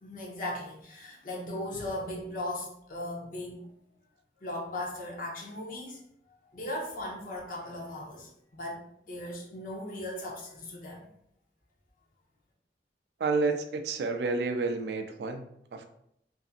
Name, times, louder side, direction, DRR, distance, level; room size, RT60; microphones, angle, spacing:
voice 1, 0.0-3.6 4.4-6.0 6.3-8.8 9.1-11.1, left 1 dB, 50° left, -2 dB, 0.6 m, -38 dB
voice 2, 13.2-15.9, right 3 dB, 65° right, 7 dB, 0.3 m, -30 dB
2.7 x 2.5 x 2.4 m, 0.73 s
head